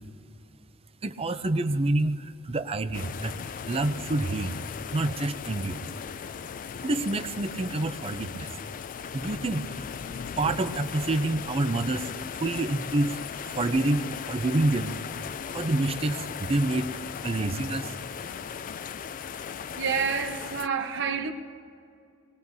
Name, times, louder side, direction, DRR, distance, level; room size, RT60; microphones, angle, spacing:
voice 1, 1.0-3.3 3.7-4.6 4.9-5.8 6.8-8.5 9.1-9.9 10.4-12.1 12.4-13.2 13.5-15.0 15.5-16.9 17.2-18.0, right 2 dB, 25° right, 0.5 m, -27 dB
sound 1, 2.9-20.7, left 7 dB, 40° left, 0.3 m, -37 dB
voice 2, 19.7-21.3, right 6 dB, 55° right, 1.0 m, -28 dB
25.5 x 19.5 x 2.7 m
head